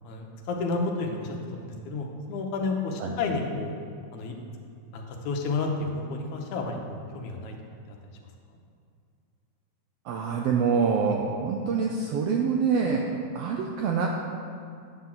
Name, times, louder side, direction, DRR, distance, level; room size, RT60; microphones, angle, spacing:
voice 1, 0.0-3.7 4.1-4.3 4.9-7.5 7.9-8.0, left 3 dB, 85° left, 2 dB, 2.3 m, -31 dB
voice 2, 10.0-13.0 13.3-14.1, right 6 dB, 85° right, 0 dB, 1.4 m, -25 dB
9.5 x 3.9 x 7.3 m, 2.4 s
omnidirectional pair, 3.3 m